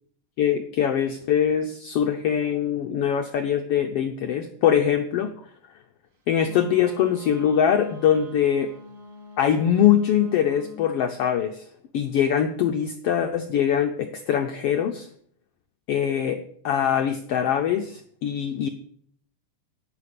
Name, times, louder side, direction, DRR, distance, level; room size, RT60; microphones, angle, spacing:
voice 1, 0.4-5.3 6.3-8.7 9.4-11.7 11.9-15.1 15.9-16.4 16.6-18.7, left 9 dB, 90° left, 6 dB, 1.3 m, -23 dB
Wind instrument woodwind instrument, 6.4-10.8, left 2 dB, 45° right, 1.0 m, -45 dB
11.0 x 9.4 x 6.6 m, 0.63 s
omnidirectional pair, 3.6 m